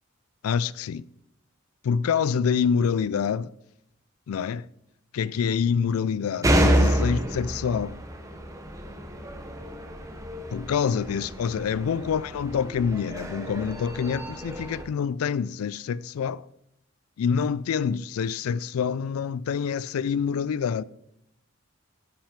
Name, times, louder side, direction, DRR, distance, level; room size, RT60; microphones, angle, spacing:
voice 1, 0.4-1.1 1.8-3.5 4.3-4.6 5.1-8.0 10.5-16.4 17.2-20.8, left 6 dB, 85° left, 0.3 m, -26 dB
sound 1, 6.4-14.8, right 1 dB, 15° right, 0.9 m, -28 dB
9.9 x 6.1 x 5.0 m
head